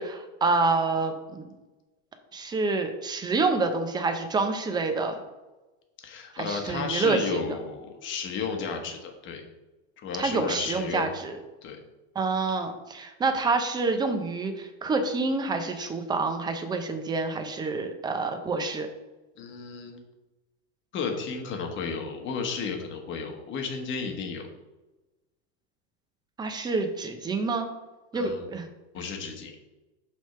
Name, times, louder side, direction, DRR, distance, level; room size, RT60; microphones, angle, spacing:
voice 1, 0.0-1.5 2.3-5.1 6.3-7.6 10.2-11.4 12.1-18.9 26.4-27.7 28.1-28.7, right 3 dB, 10° right, 6 dB, 0.6 m, -27 dB
voice 2, 6.0-9.4 10.0-11.1 11.6-11.8 19.4-20.0 20.9-24.4 28.1-28.5 28.9-29.5, left 5 dB, 35° left, 3 dB, 1.1 m, -33 dB
6.2 x 3.6 x 5.6 m, 1.1 s
supercardioid pair, 140°, 35 cm